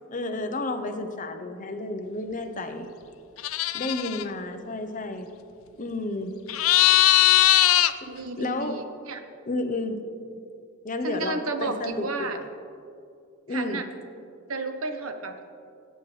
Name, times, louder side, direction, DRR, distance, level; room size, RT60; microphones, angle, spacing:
voice 1, 0.1-2.9 3.7-5.3 5.8-6.3 8.4-8.9 9.5-10.0 10.8-12.5 13.5-13.8, left 2 dB, 40° left, 7 dB, 0.8 m, -31 dB
sound 1, 3.4-4.2 6.5-7.9, left 14 dB, 80° left, 0.5 m, -19 dB
voice 2, 8.1-9.2 11.0-12.4 13.5-13.9 14.5-15.5, right 3 dB, 85° right, 6 dB, 1.0 m, -32 dB
21.5 x 9.1 x 3.3 m, 2.5 s
head